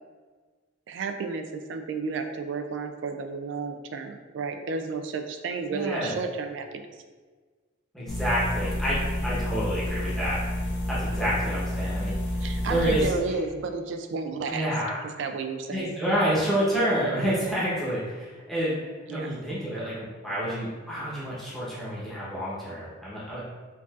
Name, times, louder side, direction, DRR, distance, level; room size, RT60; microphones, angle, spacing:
voice 1, 0.9-6.9 12.4-14.7 15.2-15.9 19.1-19.3, right 4 dB, 65° right, 6 dB, 0.3 m, -32 dB
voice 2, 5.7-6.1 7.9-10.4 10.9-12.4 12.7-13.1 14.5-15.0 15.7-18.8 19.1-23.4, equal, ahead, -10 dB, 0.9 m, -28 dB
sound 1, 8.1-13.1, left 1 dB, 60° left, 0.5 m, -29 dB
4.6 x 2.6 x 2.4 m, 1.4 s
head